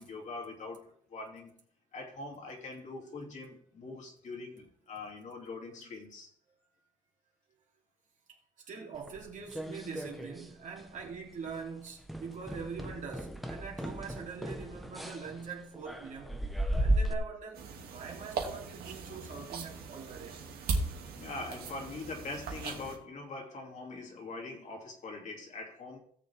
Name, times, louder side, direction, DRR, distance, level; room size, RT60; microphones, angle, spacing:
voice 1, 0.0-1.6 1.9-6.3 19.1-19.5 21.2-26.0, left 3 dB, 45° left, 3.0 m, -43 dB
voice 2, 8.7-16.4 16.8-20.4, right 5 dB, 45° right, 3.2 m, -43 dB
sound 1, 9.1-10.5 10.8-11.2 11.5-11.6 12.1-17.1, right 1 dB, ahead, 1.1 m, -35 dB
sound 2, 17.5-23.0, right 4 dB, 65° right, 2.5 m, -38 dB
17.5 x 7.0 x 3.6 m
cardioid pair, 110°, 17 cm